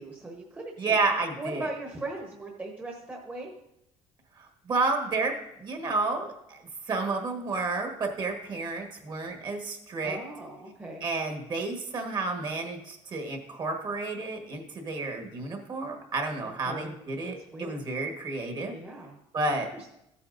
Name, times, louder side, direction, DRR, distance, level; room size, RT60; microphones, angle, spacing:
voice 1, 0.0-1.0 1.4-3.5 10.0-11.0 16.4-16.9 17.2-17.8 18.7-19.2 19.7-19.9, right 2 dB, 15° right, 0 dB, 1.1 m, -39 dB
voice 2, 0.8-1.7 4.4-10.2 11.0-18.7 19.3-19.7, right 3 dB, 40° right, 3 dB, 1.5 m, -31 dB
14.5 x 8.5 x 2.6 m, 0.80 s
cardioid pair, 155°, 12 cm